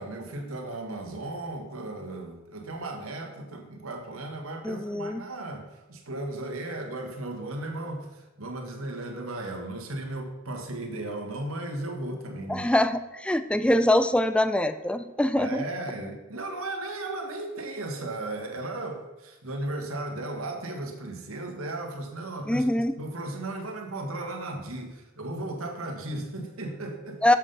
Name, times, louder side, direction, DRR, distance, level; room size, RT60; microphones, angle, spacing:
voice 1, 0.0-12.7 15.4-27.3, right 2 dB, 85° right, 3 dB, 1.8 m, -35 dB
voice 2, 4.6-5.2 12.5-15.6 22.5-22.9 27.2-27.4, left 1 dB, 5° left, 11 dB, 0.4 m, -23 dB
7.5 x 7.4 x 5.5 m, 1.1 s
head